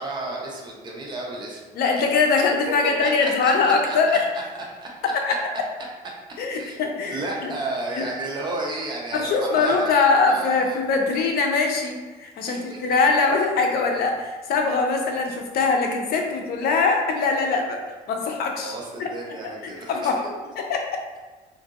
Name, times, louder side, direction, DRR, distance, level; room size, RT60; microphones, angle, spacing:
voice 1, 0.0-1.7 3.0-4.2 4.8-4.9 6.6-10.8 12.5-13.0 18.6-20.2, right 2 dB, 25° right, -3 dB, 0.7 m, -33 dB
voice 2, 1.7-4.3 5.0-5.4 6.4-7.5 8.0-8.1 9.1-17.8 18.1-18.7 19.0-19.1 19.6-20.2 20.6-20.9, left 4 dB, 65° left, 2 dB, 0.6 m, -22 dB
3.8 x 2.6 x 2.4 m, 1.3 s
cardioid pair, 110°, 17 cm